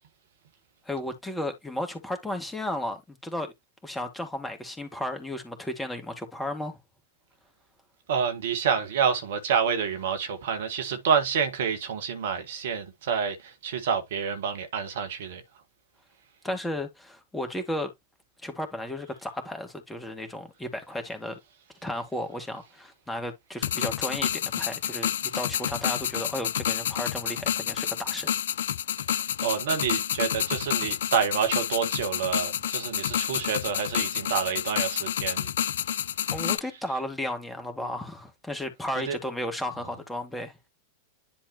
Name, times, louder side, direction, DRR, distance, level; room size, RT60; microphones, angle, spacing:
voice 1, 0.9-3.5 3.8-6.8 16.4-17.9 18.4-21.4 21.8-28.3 36.3-40.5, left 1 dB, 5° left, 2.1 m, -34 dB
voice 2, 8.1-15.4 29.4-35.5 39.1-39.2, right 7 dB, 60° right, 1.5 m, -28 dB
sound 1, 23.6-36.6, left 10 dB, 60° left, 0.3 m, -29 dB
10.5 x 4.2 x 2.9 m
figure-of-eight pair, 90°, 0 cm